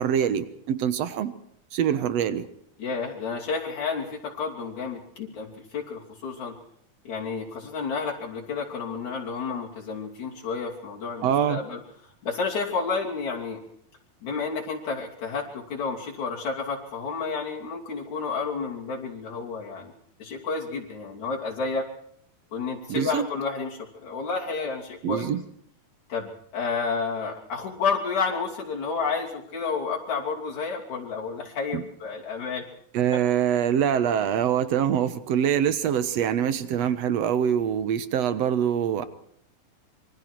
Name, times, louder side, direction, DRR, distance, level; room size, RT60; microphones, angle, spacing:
voice 1, 0.0-1.3 1.7-2.4 11.2-11.6 22.9-23.3 25.0-25.4 31.7-31.8 32.9-39.1, right 9 dB, 60° right, 13 dB, 2.0 m, -24 dB
voice 2, 2.8-6.5 7.0-11.8 12.2-13.6 14.2-19.9 20.2-21.9 22.5-25.3 26.1-32.6, left 5 dB, 60° left, -2 dB, 4.3 m, -30 dB
26.5 x 24.0 x 4.7 m, 0.67 s
omnidirectional pair, 3.8 m